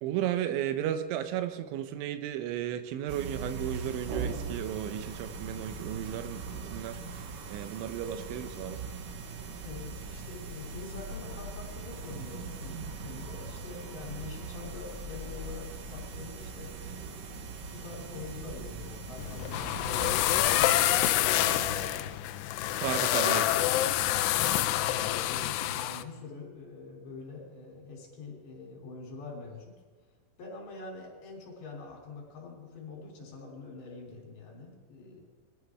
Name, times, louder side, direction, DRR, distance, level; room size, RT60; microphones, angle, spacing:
voice 1, 0.0-7.0 7.5-8.8 22.8-23.4, right 11 dB, 80° right, 10 dB, 3.1 m, -34 dB
sound 1, 3.1-21.9, right 4 dB, 65° right, 2.2 m, -40 dB
voice 2, 9.6-17.4 17.7-22.2 23.0-24.2 24.7-29.8 30.4-35.2, left 3 dB, 65° left, -1 dB, 5.1 m, -45 dB
sound 2, 19.2-26.0, left 14 dB, 85° left, 2.4 m, -27 dB
22.5 x 14.5 x 3.5 m, 1.3 s
omnidirectional pair, 5.5 m